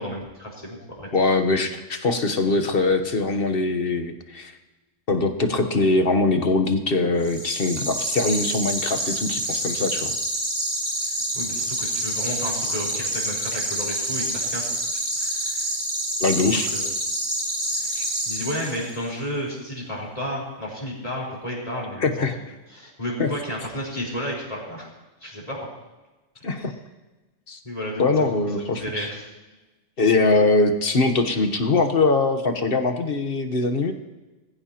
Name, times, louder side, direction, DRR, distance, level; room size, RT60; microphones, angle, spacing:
voice 1, 0.0-1.1 11.0-14.6 14.9-15.7 16.5-16.8 17.7-22.1 22.7-24.9 25.2-25.7 26.5-26.7 27.6-28.3 28.6-29.3, equal, 30° left, -4 dB, 4.6 m, -32 dB
voice 2, 1.1-4.5 5.1-10.1 16.2-16.7 18.0-18.1 22.0-22.4 23.2-23.3 26.4-26.7 27.5-27.6 28.0-29.1 30.0-33.9, left 3 dB, 50° left, 7 dB, 1.3 m, -22 dB
sound 1, 7.2-19.0, right 1 dB, 65° right, 2.5 m, -27 dB
21.0 x 15.5 x 3.0 m, 1.2 s
omnidirectional pair, 1.3 m